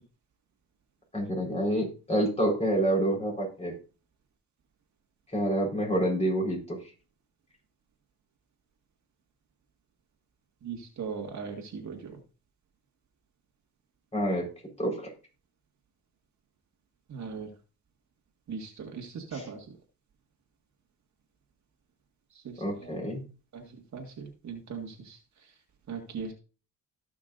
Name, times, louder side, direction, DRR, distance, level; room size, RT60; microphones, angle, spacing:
voice 1, 1.1-3.7 5.3-6.9 14.1-14.5 14.8-15.1 19.3-19.5 22.6-23.3, right 1 dB, 15° left, -1 dB, 4.6 m, -28 dB
voice 2, 10.6-12.2 17.1-17.5 18.5-19.7 22.3-22.9 23.5-25.2 25.9-26.3, right 5 dB, 45° right, 3 dB, 2.0 m, -39 dB
17.0 x 6.0 x 2.6 m, 0.34 s
cardioid pair, 95°, 38 cm